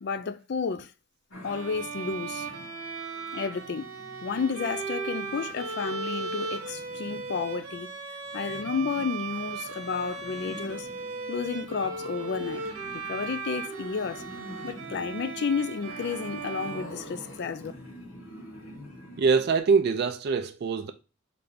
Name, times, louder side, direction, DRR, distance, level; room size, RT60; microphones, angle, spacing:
voice 1, 0.0-0.9 1.4-2.5 3.3-3.9 4.2-7.9 8.3-10.9 11.3-12.7 12.9-14.2 14.6-17.7, left 5 dB, 50° left, 0.3 m, -31 dB
sound 1, 1.3-19.6, left 1 dB, 70° left, 1.2 m, -47 dB
Bowed string instrument, 1.4-17.5, right 4 dB, 80° right, 0.9 m, -37 dB
voice 2, 19.2-20.9, right 5 dB, 45° right, 0.3 m, -23 dB
3.8 x 3.3 x 3.4 m
head